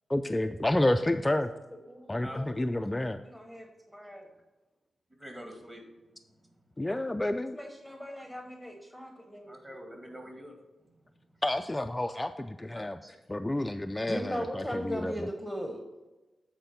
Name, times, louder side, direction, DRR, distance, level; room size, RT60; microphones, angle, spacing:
voice 1, 0.1-1.5 2.1-3.2 6.8-7.6 11.4-13.0 13.3-15.3, left 1 dB, 15° left, 7 dB, 0.3 m, -30 dB
voice 2, 1.8-2.7 3.2-4.3 6.9-7.0 7.5-9.8 12.7-13.2 14.0-15.8, equal, 5° right, 3 dB, 1.1 m, -39 dB
voice 3, 5.2-6.8 9.4-11.4, equal, 25° right, 2 dB, 2.2 m, -47 dB
9.2 x 4.4 x 5.8 m, 1.1 s
cardioid pair, 80°, 0 cm